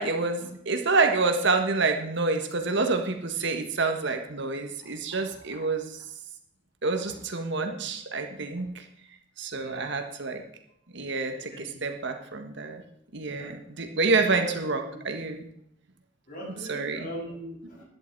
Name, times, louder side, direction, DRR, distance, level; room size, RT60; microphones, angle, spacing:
voice 1, 0.0-6.0 6.8-8.8 9.4-10.4 10.9-12.8 13.1-15.5 16.7-17.1, right 3 dB, 65° right, 6 dB, 1.6 m, -28 dB
voice 2, 9.5-10.0 11.3-11.8 13.3-13.5 14.3-14.5 14.9-15.0 16.3-17.9, right 1 dB, 45° left, -3 dB, 7.4 m, -41 dB
15.0 x 11.5 x 4.7 m, 0.75 s
head